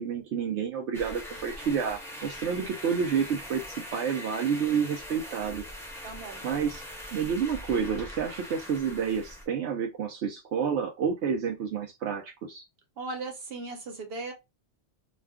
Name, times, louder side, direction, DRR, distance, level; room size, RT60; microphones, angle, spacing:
voice 1, 0.0-5.6 6.4-6.8 7.1-12.6, right 6 dB, 80° right, 0.9 m, -29 dB
sound 1, 0.9-9.5, left 1 dB, 5° left, 0.5 m, -42 dB
voice 2, 6.0-6.4 13.0-14.3, right 3 dB, 60° right, 1.1 m, -37 dB
2.4 x 2.2 x 3.4 m
omnidirectional pair, 1.2 m